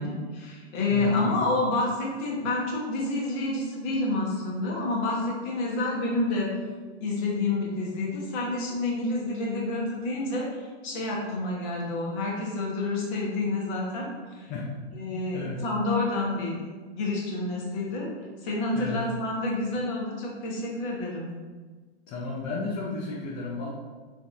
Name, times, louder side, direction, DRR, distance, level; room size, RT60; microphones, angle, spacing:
voice 1, 0.0-6.5 7.0-14.5 14.9-16.6 17.0-18.1 18.4-21.3, left 2 dB, 45° left, -3 dB, 1.1 m, -29 dB
voice 2, 0.9-1.4 14.5-14.8 15.0-15.6 18.7-19.0 22.1-23.7, left 3 dB, 25° left, -4 dB, 0.4 m, -33 dB
3.9 x 2.6 x 2.4 m, 1.4 s
hypercardioid pair, 115°, 33 cm